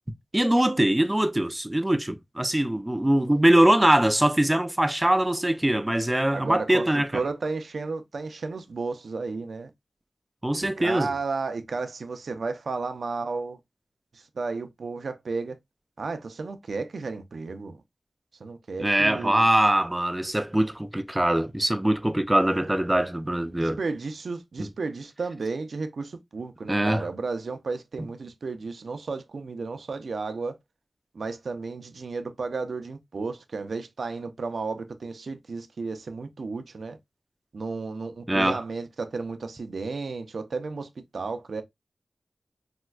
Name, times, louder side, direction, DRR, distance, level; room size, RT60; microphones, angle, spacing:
voice 1, 0.3-7.1 10.4-11.1 18.8-23.8 24.6-24.7 26.7-27.1 38.3-38.6, right 1 dB, 15° right, 0.4 m, -22 dB
voice 2, 6.3-9.7 10.8-13.6 14.1-15.6 16.0-17.8 18.4-19.5 22.3-22.7 23.6-30.6 31.1-37.0 37.5-41.6, right 4 dB, 75° right, 0.5 m, -33 dB
4.2 x 2.2 x 2.3 m
cardioid pair, 60°, 0 cm